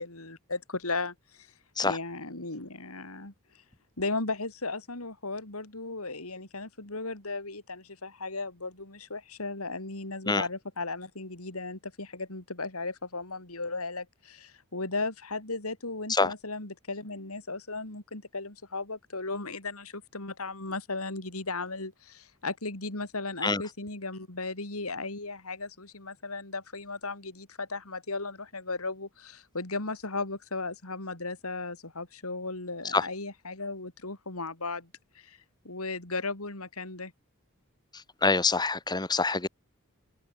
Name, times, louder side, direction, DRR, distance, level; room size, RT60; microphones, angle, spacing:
voice 1, 0.0-1.5 1.8-3.3 4.0-34.9 35.1-35.4 35.6-37.1, left 3 dB, 80° left, 4.2 m, -36 dB
voice 2, 38.2-39.5, left 3 dB, 20° left, 1.9 m, -25 dB
head